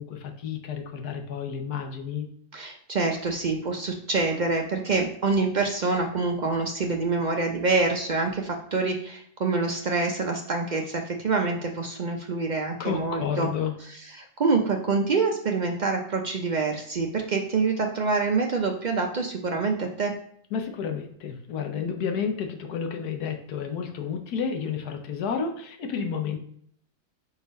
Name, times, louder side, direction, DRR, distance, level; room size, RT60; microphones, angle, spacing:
voice 1, 0.0-2.3 12.8-13.7 20.5-26.4, left 6 dB, 80° left, 4 dB, 1.3 m, -31 dB
voice 2, 2.5-13.5 14.2-20.1, right 4 dB, 80° right, 2 dB, 0.4 m, -26 dB
4.7 x 4.0 x 5.1 m, 0.65 s
omnidirectional pair, 1.7 m